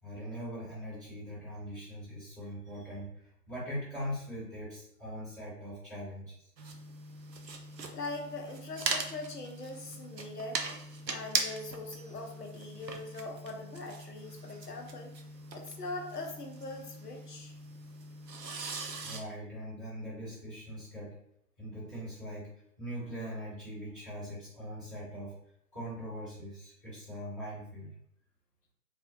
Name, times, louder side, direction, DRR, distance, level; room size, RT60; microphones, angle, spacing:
voice 1, 0.0-6.4 19.0-21.2 21.6-22.5 22.8-25.3 25.7-27.9, equal, 10° right, -18 dB, 1.0 m, -41 dB
sound 1, 6.6-19.2, right 3 dB, 85° right, 0.6 m, -40 dB
voice 2, 7.9-10.6 11.1-15.1 15.5-17.5, left 2 dB, 75° left, 2 dB, 0.7 m, -41 dB
2.5 x 2.4 x 2.6 m, 0.72 s
figure-of-eight pair, 155°, 48 cm